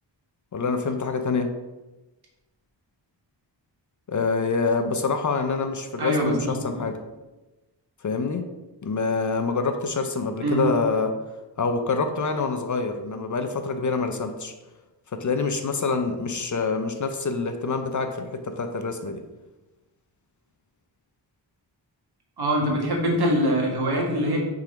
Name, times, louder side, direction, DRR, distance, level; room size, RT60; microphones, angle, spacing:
voice 1, 0.5-1.5 4.1-7.0 8.0-8.5 8.8-11.1 11.6-14.5 15.1-19.2, left 4 dB, 45° left, 7 dB, 0.5 m, -26 dB
voice 2, 6.0-6.6 10.4-10.7 22.4-24.4, equal, 60° right, -1 dB, 1.7 m, -23 dB
5.9 x 3.9 x 5.7 m, 1.1 s
wide cardioid pair, 175°, 44 cm